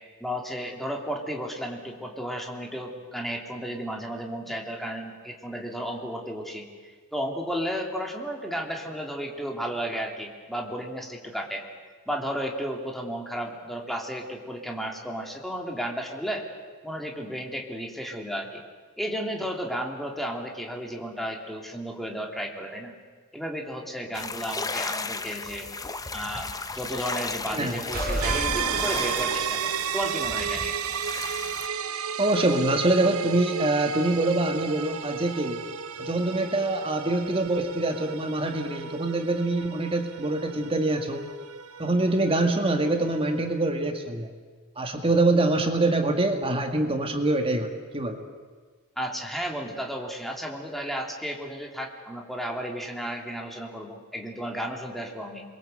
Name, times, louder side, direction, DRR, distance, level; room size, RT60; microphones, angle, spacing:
voice 1, 0.2-11.6 12.1-16.5 16.8-18.6 19.0-22.9 23.3-25.7 26.1-26.5 26.7-30.8 49.0-55.4, equal, ahead, 1 dB, 3.0 m, -33 dB
sound 1, 24.1-31.7, left 3 dB, 15° left, 0.8 m, -35 dB
sound 2, 27.9-29.9, right 1 dB, 45° right, 6.2 m, -31 dB
sound 3, 28.2-43.8, right 7 dB, 70° right, 1.0 m, -33 dB
voice 2, 32.2-35.6 36.0-41.2 41.8-44.3 44.8-48.2, right 2 dB, 25° right, 5 dB, 2.0 m, -25 dB
28.0 x 22.5 x 7.9 m, 1.5 s
head